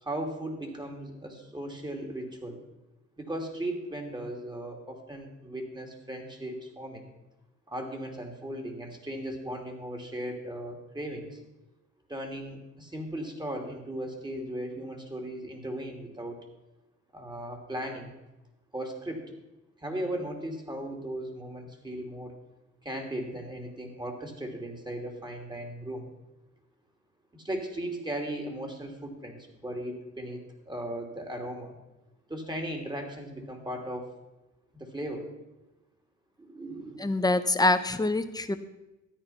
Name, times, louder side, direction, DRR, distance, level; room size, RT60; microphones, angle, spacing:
voice 1, 0.0-2.6 3.2-7.1 7.7-11.4 12.1-16.4 17.1-18.1 18.7-19.3 19.8-22.4 22.8-26.1 27.3-31.8 32.3-34.1 34.7-35.3 36.4-37.1, right 1 dB, 15° right, 2 dB, 2.9 m, -37 dB
voice 2, 37.0-38.5, left 2 dB, 15° left, 9 dB, 1.0 m, -25 dB
13.5 x 9.5 x 5.8 m, 1.0 s
cardioid pair, 90°, 30 cm